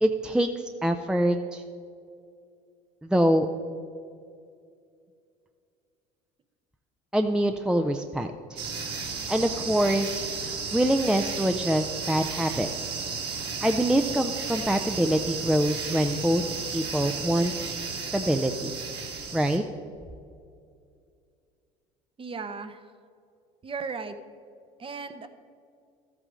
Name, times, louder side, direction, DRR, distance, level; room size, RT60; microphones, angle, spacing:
voice 1, 0.0-1.6 3.0-3.5 7.1-8.6 9.3-10.2 10.7-13.0 13.6-16.4 16.7-17.5 18.0-18.7 19.3-19.6, right 1 dB, 5° right, 6 dB, 0.5 m, -25 dB
sound 1, 8.6-19.6, right 5 dB, 50° right, 2.0 m, -34 dB
voice 2, 22.2-22.9 23.6-24.2 24.8-25.3, right 5 dB, 25° right, 10 dB, 0.8 m, -36 dB
13.5 x 8.3 x 3.7 m, 2.3 s
hypercardioid pair, 75°, 21 cm